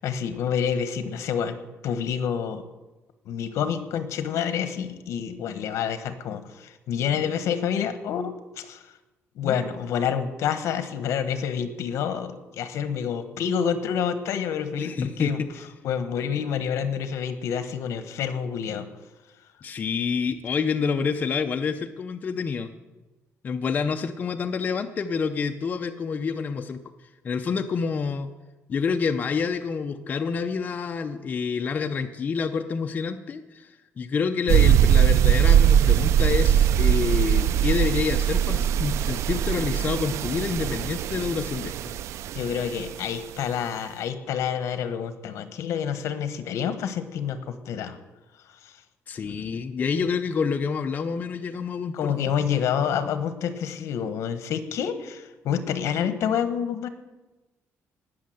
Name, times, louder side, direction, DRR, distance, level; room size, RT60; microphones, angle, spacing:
voice 1, 0.0-1.6 1.8-2.6 3.2-8.9 9.3-15.4 15.8-18.9 42.3-48.0 48.4-48.8 49.2-49.6 51.9-56.9, left 8 dB, 75° left, 10 dB, 1.3 m, -28 dB
voice 2, 14.8-15.5 19.6-22.7 23.4-26.8 27.2-28.3 28.7-41.9 49.1-52.1, left 5 dB, 35° left, 6 dB, 0.6 m, -28 dB
sound 1, 34.5-42.9, right 9 dB, 70° right, 0.4 m, -21 dB
19.0 x 6.5 x 7.8 m, 1.1 s
cardioid pair, 155°, 5 cm